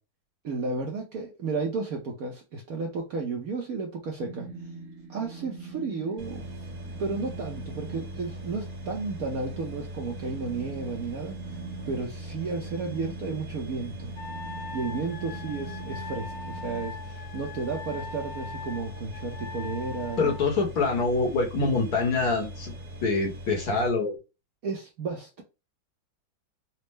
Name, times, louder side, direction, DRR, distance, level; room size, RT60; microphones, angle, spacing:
voice 1, 0.4-4.5 5.1-6.4 6.9-11.3 11.9-14.1 14.7-20.3 24.6-25.4, right 4 dB, 60° right, 1.0 m, -33 dB
sound 1, 4.2-16.9, right 5 dB, 80° right, 1.5 m, -43 dB
sound 2, 6.2-23.9, equal, 45° right, 1.5 m, -41 dB
Wind instrument woodwind instrument, 14.2-20.5, left 4 dB, 75° left, 1.3 m, -41 dB
voice 2, 20.2-22.7 23.0-24.2, left 3 dB, 55° left, 1.4 m, -25 dB
4.2 x 2.0 x 3.2 m
omnidirectional pair, 2.2 m